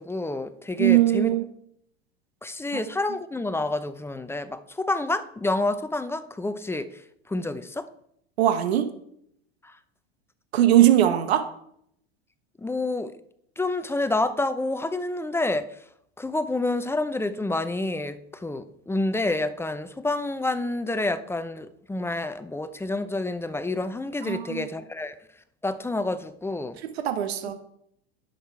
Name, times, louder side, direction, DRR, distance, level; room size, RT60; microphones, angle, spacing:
voice 1, 0.0-1.3 2.4-6.9 7.3-7.9 12.6-13.1 13.6-15.7 16.2-25.1 25.6-26.8, left 2 dB, 10° left, 11 dB, 0.7 m, -28 dB
voice 2, 0.8-1.4 2.7-2.8 8.4-8.9 10.5-11.4 24.2-24.7 26.8-27.5, right 12 dB, 80° right, 9 dB, 1.2 m, -20 dB
10.5 x 6.5 x 4.6 m, 0.70 s
hypercardioid pair, 100°, 31 cm